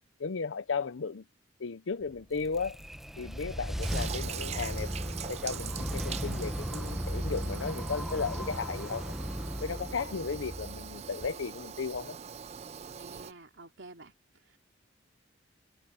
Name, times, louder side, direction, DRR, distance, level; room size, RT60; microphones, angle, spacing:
voice 1, 0.2-1.2 1.6-2.8 3.2-4.9 5.2-9.1 9.6-12.2, left 5 dB, 80° left, 0.6 m, -35 dB
sound 1, 2.1-11.4, equal, ahead, 1.0 m, -36 dB
Toilet flush, 3.8-13.3, right 7 dB, 35° right, 0.4 m, -42 dB
Singing / Musical instrument, 4.1-9.8, left 2 dB, 65° left, 3.6 m, -54 dB
voice 2, 13.0-14.1 14.5-14.6, right 2 dB, 70° right, 2.9 m, -50 dB
head